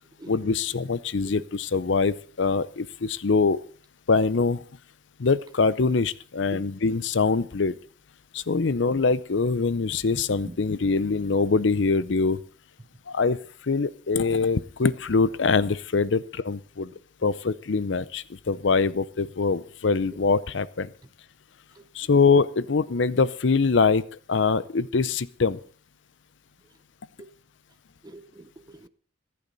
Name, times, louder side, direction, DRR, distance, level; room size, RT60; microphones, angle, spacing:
voice 1, 0.3-3.6 4.1-4.6 5.2-7.7 8.3-12.4 13.1-13.4 13.6-16.9 17.2-20.9 21.9-24.0 24.3-25.6, left 4 dB, 70° left, 0.6 m, -23 dB
voice 2, 28.0-28.9, right 1 dB, 20° right, 0.6 m, -43 dB
25.0 x 8.6 x 4.0 m
head